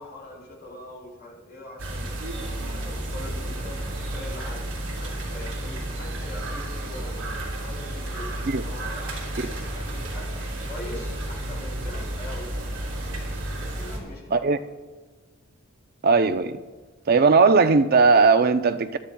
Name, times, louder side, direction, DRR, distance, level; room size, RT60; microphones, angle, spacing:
voice 1, 0.0-2.0 2.4-4.7 5.0-7.2 7.6-8.3 8.6-9.5 9.7-10.4 10.7-12.5 13.6-14.5, left 1 dB, 50° left, 3.9 m, -42 dB
sound 1, 1.8-14.0, right 1 dB, 70° right, 2.9 m, -32 dB
voice 2, 16.0-16.6 17.1-19.0, right 4 dB, 45° right, 0.5 m, -18 dB
22.0 x 11.5 x 2.3 m
head